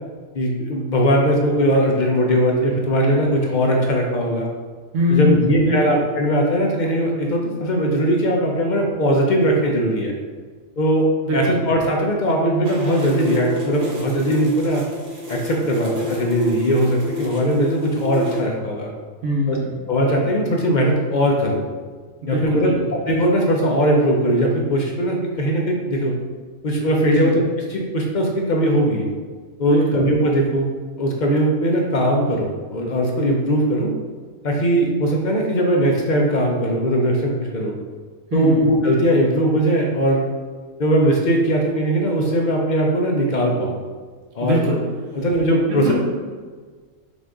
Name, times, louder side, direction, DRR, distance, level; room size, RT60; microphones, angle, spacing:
voice 1, 0.3-4.5 5.1-10.1 10.8-11.0 11.3-14.8 15.3-18.9 19.5-19.6 19.9-21.7 22.3-26.1 26.6-27.4 27.7-29.1 29.6-30.7 31.0-33.9 34.4-37.8 38.3-40.3 40.8-43.7 44.4-44.6 45.1-45.9, equal, 60° left, 0 dB, 0.5 m, -19 dB
voice 2, 4.9-6.0 11.2-11.6 19.2-19.7 22.2-22.7 27.0-27.3 29.6-30.0 38.3-38.6 44.4-44.8 45.7-45.9, left 1 dB, 75° right, -3 dB, 1.2 m, -22 dB
sound 1, 12.6-18.4, equal, 50° right, 1.1 m, -30 dB
5.2 x 2.5 x 3.6 m, 1.5 s
omnidirectional pair, 1.4 m